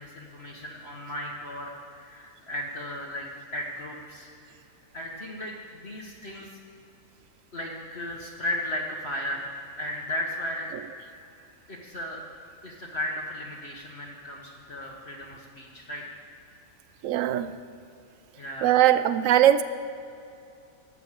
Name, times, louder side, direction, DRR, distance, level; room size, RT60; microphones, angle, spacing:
voice 1, 0.0-1.7 2.0-4.3 4.9-6.5 7.5-9.5 9.8-10.7 11.7-12.2 12.6-16.0 18.4-18.7, left 1 dB, 50° left, -2 dB, 1.4 m, -35 dB
voice 2, 17.0-17.6 18.6-19.6, right 12 dB, 75° right, 13 dB, 1.0 m, -20 dB
12.5 x 8.1 x 7.4 m, 2.6 s
omnidirectional pair, 1.4 m